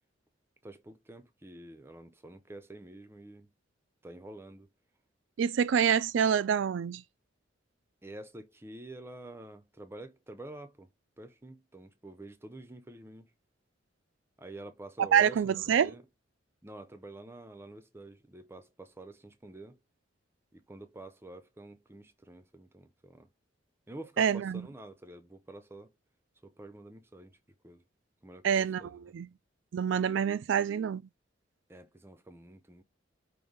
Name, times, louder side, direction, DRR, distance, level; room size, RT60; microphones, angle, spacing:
voice 1, 0.6-3.5 4.0-4.7 8.0-10.9 11.2-13.3 14.4-16.0 16.6-19.8 20.5-23.3 23.9-25.9 26.4-27.4 27.6-27.8 28.2-29.1 31.7-32.8, right 1 dB, 15° right, 0.6 m, -48 dB
voice 2, 5.4-7.0 15.0-15.9 24.2-24.7 28.4-29.3 29.7-31.0, right 8 dB, 75° right, 0.3 m, -27 dB
5.0 x 2.6 x 3.9 m
head